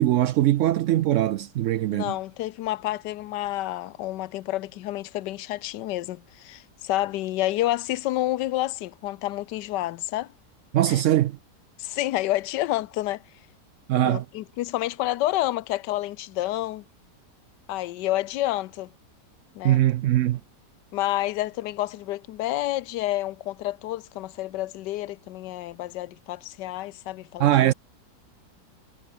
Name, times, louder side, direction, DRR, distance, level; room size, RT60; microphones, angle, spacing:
voice 1, 0.0-2.1 10.7-11.4 13.9-14.2 19.6-20.4 27.4-27.7, right 13 dB, 90° right, 0.6 m, -21 dB
voice 2, 1.9-10.3 10.9-11.0 11.8-13.2 14.0-16.8 17.7-18.9 19.6-19.8 20.9-27.7, left 15 dB, 80° left, 1.3 m, -29 dB
omnidirectional pair, 1.9 m